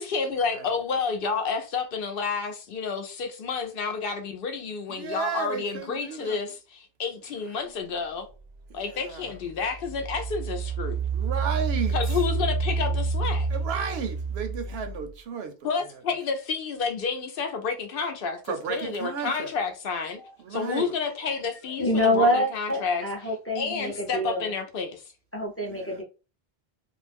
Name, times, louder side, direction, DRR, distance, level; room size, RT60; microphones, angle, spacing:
voice 1, 0.0-8.3 8.7-11.0 11.9-13.5 15.6-20.2 20.5-23.0 23.6-25.0, left 5 dB, 65° left, 0.7 m, -30 dB
voice 2, 4.9-6.4 8.7-9.3 11.1-12.0 13.5-15.5 18.5-19.5 20.4-20.9 23.8-23.9 25.6-26.0, right 6 dB, 75° right, 0.8 m, -33 dB
Engine, 8.5-8.6 9.2-15.1, right 4 dB, 50° right, 0.5 m, -29 dB
voice 3, 21.2-24.5 25.3-26.0, left 1 dB, 20° left, 0.5 m, -26 dB
2.5 x 2.0 x 3.3 m
omnidirectional pair, 1.1 m